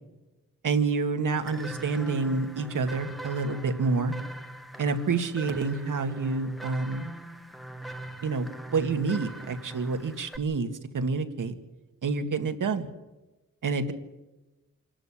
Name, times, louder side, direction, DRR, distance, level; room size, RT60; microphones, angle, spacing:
voice 1, 0.6-4.1 4.8-7.1 8.2-11.5 12.0-12.9 13.6-13.9, right 4 dB, 70° right, 8 dB, 2.0 m, -28 dB
sound 1, 1.4-10.4, right 1 dB, ahead, 1.3 m, -41 dB
26.5 x 12.5 x 8.7 m, 1.1 s
wide cardioid pair, 100°, 33 cm